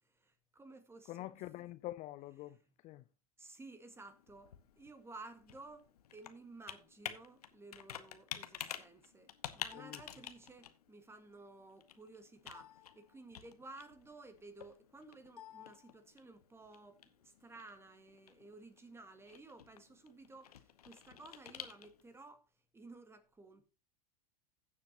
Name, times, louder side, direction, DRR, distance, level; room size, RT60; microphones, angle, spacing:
voice 1, 0.0-1.5 2.5-2.6 3.4-23.6, right 3 dB, 15° right, 1.7 m, -55 dB
voice 2, 1.1-2.6 2.8-3.0 9.7-10.0, left 15 dB, 40° left, 0.5 m, -45 dB
Computer keyboard, 3.9-22.2, left 10 dB, 75° left, 1.0 m, -51 dB
16.0 x 7.2 x 2.9 m
hypercardioid pair, 90°, 20 cm